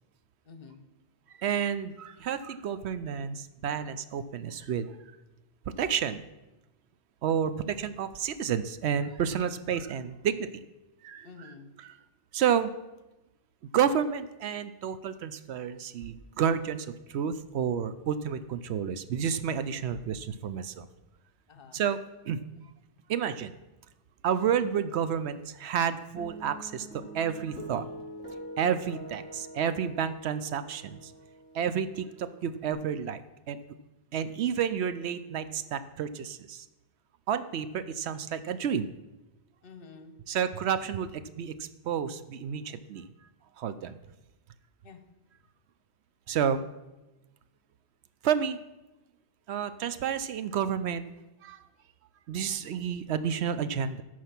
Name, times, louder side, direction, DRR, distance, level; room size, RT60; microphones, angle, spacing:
voice 1, 0.4-0.9 11.2-11.7 21.5-21.9 34.1-34.2 39.6-40.2 44.8-45.0, left 4 dB, 55° left, 8 dB, 1.0 m, -49 dB
voice 2, 1.4-4.9 5.8-6.2 7.2-10.6 11.0-11.3 12.3-12.7 13.7-20.9 21.7-22.0 22.3-22.5 23.1-23.5 24.2-27.9 28.6-31.1 31.5-33.2 33.5-33.6 34.1-36.6 37.3-38.9 40.3-43.1 43.6-44.0 46.3-46.6 48.2-48.6 49.5-51.0 51.4-51.6 52.3-54.0, right 8 dB, 70° right, 12 dB, 0.8 m, -30 dB
Guitar, 26.2-32.7, right 1 dB, 10° left, 4.1 m, -45 dB
13.5 x 4.8 x 5.9 m, 1.0 s
omnidirectional pair, 1.2 m